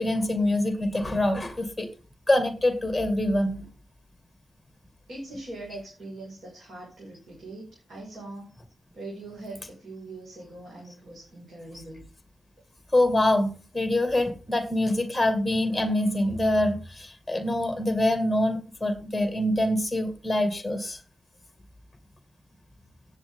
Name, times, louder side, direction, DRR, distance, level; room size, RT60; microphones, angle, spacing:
voice 1, 0.0-1.9 2.3-3.7 12.9-21.0, left 1 dB, 5° left, 8 dB, 2.0 m, -25 dB
voice 2, 5.1-8.5 8.9-12.0, right 2 dB, 60° right, -2 dB, 5.1 m, -41 dB
16.0 x 7.8 x 3.7 m, 0.35 s
cardioid pair, 95°, 0 cm